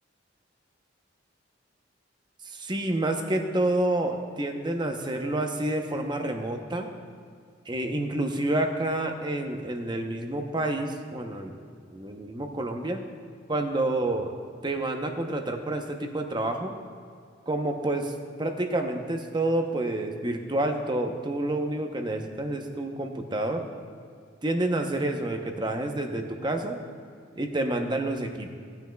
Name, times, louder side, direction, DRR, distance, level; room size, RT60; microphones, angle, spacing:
voice 1, 2.4-6.9 7.7-11.5 11.9-13.0 13.5-14.3 14.6-16.7 17.5-18.1 18.4-23.6 24.4-26.8 27.4-28.5, right 1 dB, 25° right, 4 dB, 0.7 m, -28 dB
17.5 x 9.3 x 2.3 m, 2.3 s
head